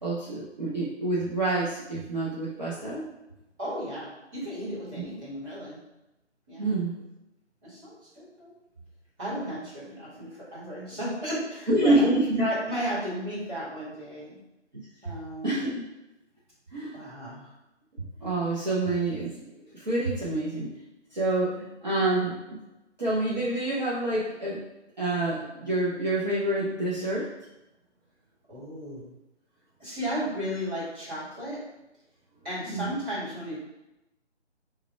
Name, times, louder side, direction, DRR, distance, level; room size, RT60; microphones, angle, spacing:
voice 1, 0.0-3.1 6.6-7.0 11.7-12.5 15.4-15.8 16.7-17.0 18.2-19.4 19.7-20.7 21.1-22.6 23.0-24.6 25.0-27.3 32.7-32.9, right 2 dB, 40° right, -7 dB, 0.6 m, -27 dB
voice 2, 3.6-5.8 6.5-6.8 7.6-8.5 9.2-12.1 12.4-14.4 15.0-15.6 16.9-17.5 21.5-22.0 28.5-29.1 29.8-31.6 32.4-33.6, equal, 10° right, -14 dB, 1.0 m, -34 dB
3.4 x 2.1 x 4.3 m, 0.93 s
figure-of-eight pair, 155°, 35 cm